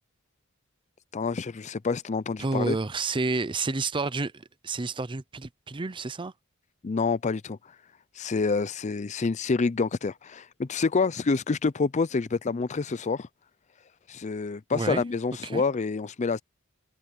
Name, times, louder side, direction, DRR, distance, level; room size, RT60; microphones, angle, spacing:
voice 1, 1.1-2.8 6.8-7.6 8.2-13.3 14.1-16.4, left 4 dB, 35° left, 0.5 m, -27 dB
voice 2, 2.4-6.3 14.7-15.0 15.4-15.6, right 3 dB, 25° right, 0.6 m, -30 dB
head